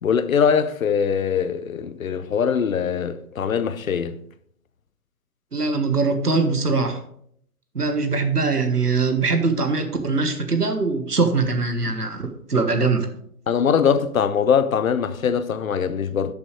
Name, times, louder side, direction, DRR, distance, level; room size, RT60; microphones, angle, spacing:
voice 1, 0.0-4.2 13.5-16.3, left 7 dB, 60° left, 0.8 m, -22 dB
voice 2, 5.5-7.0 7.7-13.1, right 4 dB, 85° right, 1.5 m, -22 dB
12.0 x 6.8 x 3.2 m
figure-of-eight pair, 130°, 46 cm